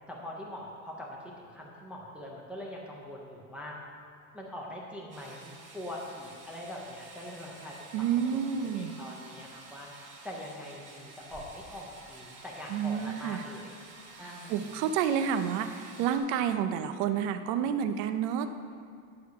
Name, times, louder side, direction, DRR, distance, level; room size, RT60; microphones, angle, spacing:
voice 1, 0.1-3.8 4.3-9.9 10.2-13.7 14.2-14.6, left 1 dB, 5° right, -3 dB, 0.4 m, -43 dB
sound 1, 5.1-16.2, right 3 dB, 25° right, 1.4 m, -51 dB
voice 2, 7.9-9.0 12.7-13.4 14.1-14.2 14.5-18.5, right 8 dB, 45° right, 9 dB, 0.6 m, -29 dB
10.5 x 4.8 x 6.8 m, 2.3 s
cardioid pair, 170°, 44 cm